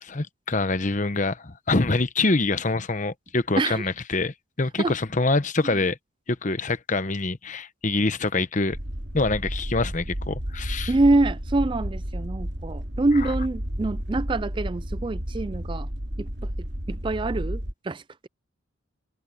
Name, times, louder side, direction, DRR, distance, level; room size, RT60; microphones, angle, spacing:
voice 1, 0.0-6.0 6.3-8.8 9.1-10.9, left 3 dB, 40° left, 1.0 m, -25 dB
sound 1, 8.7-17.7, equal, 55° right, 3.4 m, -32 dB
voice 2, 10.9-15.9 16.2-18.3, right 2 dB, 25° right, 0.4 m, -25 dB
head